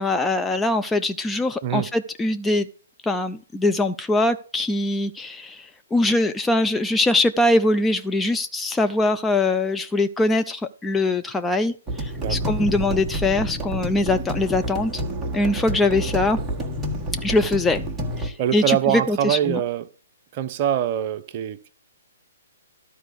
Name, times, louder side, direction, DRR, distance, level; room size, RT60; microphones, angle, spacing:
voice 1, 0.0-2.7 3.0-15.0 15.3-16.4 17.2-17.8 18.2-19.6, left 2 dB, 10° left, 0.5 m, -22 dB
sound 1, 11.9-18.3, equal, 10° right, 1.6 m, -29 dB
voice 2, 12.2-12.6 18.4-19.9 20.3-21.7, right 10 dB, 40° right, 0.8 m, -24 dB
12.5 x 4.6 x 6.9 m
figure-of-eight pair, 125°, 0 cm